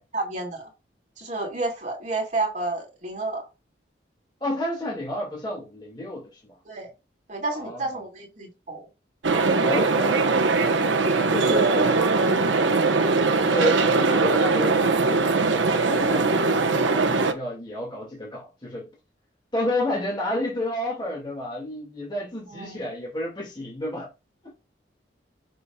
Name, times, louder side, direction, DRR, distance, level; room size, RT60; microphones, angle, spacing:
voice 1, 0.1-0.7 1.2-3.4 6.6-6.9 7.3-8.9 14.1-14.2 22.5-22.8, right 2 dB, 45° right, 2.7 m, -31 dB
voice 2, 4.4-6.4 7.5-7.9 9.6-12.4 13.4-18.9 19.5-24.1 24.4-24.5, left 1 dB, 25° left, 2.3 m, -31 dB
sound 1, 9.2-17.3, right 3 dB, 85° right, 1.1 m, -21 dB
6.9 x 6.5 x 2.3 m
head